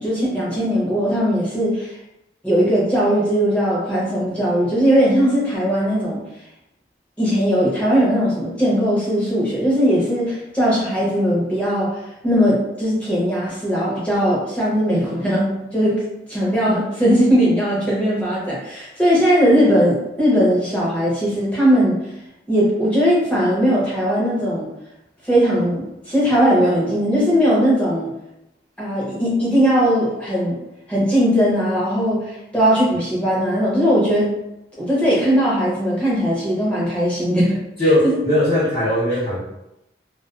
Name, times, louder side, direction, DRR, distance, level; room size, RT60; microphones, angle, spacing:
voice 1, 0.0-2.0 2.4-6.2 7.2-16.0 16.3-22.0 22.5-24.7 25.2-28.1 28.8-30.6 30.9-34.3 34.8-38.2, equal, 10° left, -7 dB, 0.7 m, -19 dB
voice 2, 37.8-39.4, left 1 dB, 45° left, -12 dB, 0.8 m, -18 dB
2.3 x 2.2 x 2.4 m, 0.88 s
head